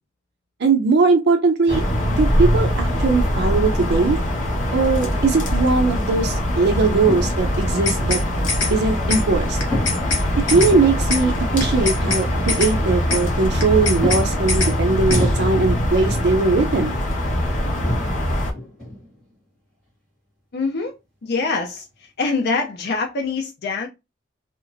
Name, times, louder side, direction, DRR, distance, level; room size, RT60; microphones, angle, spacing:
voice 1, 0.6-1.8 2.1-4.2 4.7-8.2 8.7-9.6 10.5-17.0, right 3 dB, 60° right, 0.5 m, -20 dB
sound 1, 1.7-18.5, equal, 45° left, 0.9 m, -22 dB
sound 2, 7.0-7.8 9.6-11.5 12.7-12.8 13.1-13.2 14.0-16.3 17.2-17.3 17.7-19.2, left 1 dB, 5° left, 1.6 m, -30 dB
sound 3, 7.6-8.2 8.5-8.7 9.1-9.2 9.6-10.2 10.5-10.7 11.1-11.2 11.6-12.2 12.5-12.7 13.1-13.2 13.6-14.2 14.5-14.7 15.1-15.2, left 3 dB, 80° left, 1.2 m, -23 dB
voice 2, 20.5-20.9 21.2-23.9, left 4 dB, 60° left, 0.5 m, -24 dB
2.9 x 2.4 x 2.5 m
head